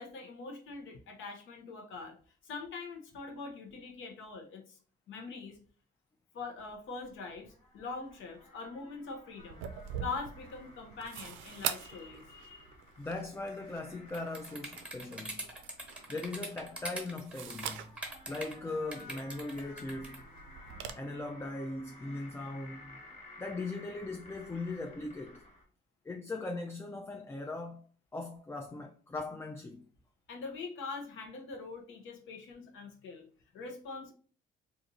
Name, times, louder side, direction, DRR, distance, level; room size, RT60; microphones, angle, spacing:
voice 1, 0.0-2.2 2.4-4.8 5.1-5.6 6.3-9.6 10.0-12.7 30.3-33.3 33.5-34.1, left 4 dB, 80° left, 0.8 m, -43 dB
Door Creak Squeal, 6.6-25.6, left 2 dB, 35° left, 1.1 m, -56 dB
sound 1, 9.4-20.9, right 8 dB, 85° right, 0.4 m, -44 dB
voice 2, 13.0-15.5 16.1-18.0 18.3-20.3 21.0-23.0 23.4-25.4 26.1-27.8 28.1-29.8, left 2 dB, 15° left, 0.3 m, -39 dB
sound 2, 14.1-18.5 18.9-20.2, right 1 dB, 5° right, 1.1 m, -42 dB
2.6 x 2.5 x 4.1 m
cardioid pair, 90°, 20 cm